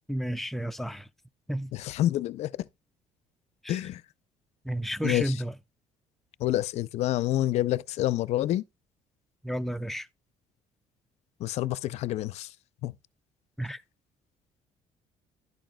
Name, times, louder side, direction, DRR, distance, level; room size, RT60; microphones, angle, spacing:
voice 1, 0.1-1.1 1.5-1.7 3.6-3.8 4.6-5.5 9.4-10.1 13.6-13.8, equal, ahead, 0.4 m, -32 dB
voice 2, 1.7-2.5 3.7-4.0 5.0-5.3 6.4-8.6 11.4-12.5 12.8-12.9, left 14 dB, 60° left, 0.5 m, -28 dB
11.0 x 9.0 x 2.2 m
cardioid pair, 145°, 12 cm